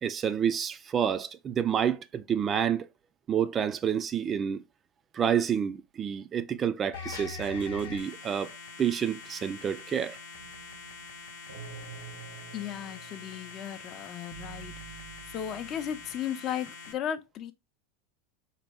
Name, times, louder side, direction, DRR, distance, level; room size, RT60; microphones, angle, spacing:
voice 1, 0.0-2.9 3.3-4.6 5.1-8.5 8.8-10.2, right 8 dB, 30° right, 0.3 m, -29 dB
sound 1, 6.9-16.9, left 5 dB, 85° left, 0.8 m, -44 dB
sound 2, 10.3-16.2, right 6 dB, 90° right, 1.1 m, -48 dB
voice 2, 12.5-15.0 15.3-17.5, left 9 dB, 45° left, 0.5 m, -36 dB
4.0 x 2.2 x 3.4 m
hypercardioid pair, 100°, 0 cm